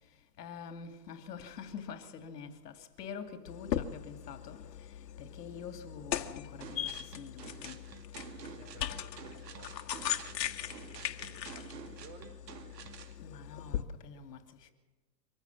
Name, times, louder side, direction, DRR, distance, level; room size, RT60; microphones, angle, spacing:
voice 1, 0.4-7.8 13.2-14.7, left 6 dB, 70° left, 2.7 m, -46 dB
sound 1, 3.5-13.8, left 10 dB, 85° left, 1.6 m, -39 dB
sound 2, 6.6-13.2, right 8 dB, 90° right, 2.6 m, -49 dB
voice 2, 8.4-12.4, right 4 dB, 30° right, 3.9 m, -56 dB
24.5 x 15.5 x 7.3 m
supercardioid pair, 165°, 49 cm